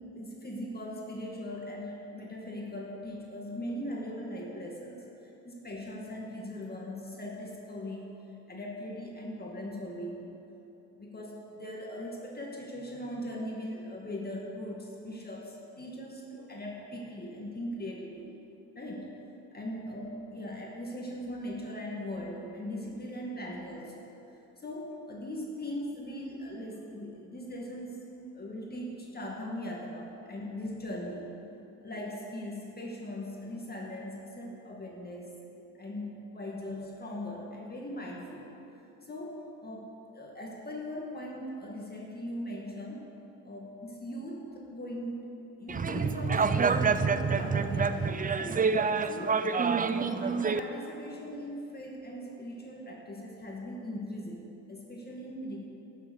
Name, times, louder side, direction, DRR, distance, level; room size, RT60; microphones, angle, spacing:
voice 1, 0.1-5.1 5.4-8.1 8.5-10.3 10.9-18.3 18.7-19.1 19.5-24.1 24.6-27.9 28.3-31.3 31.8-35.4 35.7-38.5 39.0-43.1 43.4-45.3 45.6-48.7 49.0-49.3 49.8-55.6, left 1 dB, 25° left, -2 dB, 2.2 m, -40 dB
sound 1, 45.7-50.6, right 5 dB, 25° right, 0.6 m, -27 dB
11.5 x 7.3 x 8.3 m, 2.9 s
supercardioid pair, 65°, 35 cm